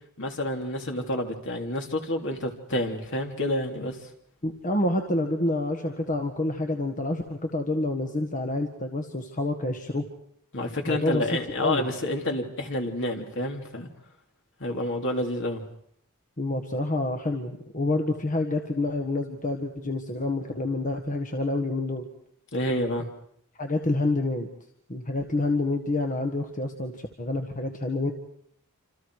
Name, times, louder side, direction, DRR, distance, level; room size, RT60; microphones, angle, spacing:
voice 1, 0.2-4.0 10.5-13.9 14.6-15.6 22.5-23.1, left 1 dB, 55° left, 2 dB, 3.1 m, -29 dB
voice 2, 4.4-10.0 10.9-11.3 11.6-11.9 16.4-22.0 23.6-24.5 24.9-28.1, left 2 dB, 35° left, 3 dB, 1.7 m, -28 dB
28.0 x 27.0 x 4.8 m, 0.70 s
head